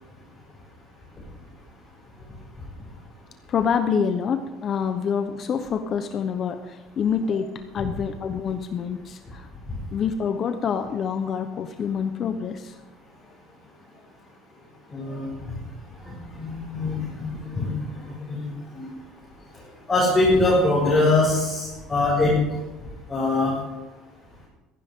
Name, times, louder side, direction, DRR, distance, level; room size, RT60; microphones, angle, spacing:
voice 1, 3.5-9.5 9.9-12.8, left 7 dB, 40° left, 8 dB, 0.9 m, -26 dB
voice 2, 14.9-15.5 16.0-18.9 19.9-22.4 23.1-23.5, left 2 dB, 15° left, -7 dB, 6.2 m, -23 dB
16.0 x 14.5 x 3.8 m, 1.1 s
cardioid pair, 135°, 0 cm